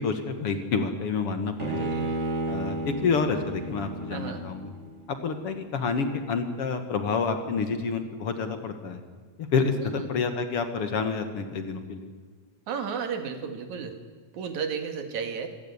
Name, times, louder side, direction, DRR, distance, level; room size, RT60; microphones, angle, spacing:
voice 1, 0.0-1.9 2.5-4.7 5.1-9.0 9.4-12.1, left 5 dB, 55° left, 8 dB, 2.3 m, -28 dB
Bowed string instrument, 1.6-4.9, right 2 dB, 30° right, 1.8 m, -32 dB
voice 2, 1.8-2.1 4.1-4.4 9.8-10.0 12.7-14.0 14.3-15.5, right 6 dB, 80° right, 7 dB, 3.3 m, -33 dB
25.5 x 14.5 x 9.6 m, 1.5 s
omnidirectional pair, 3.3 m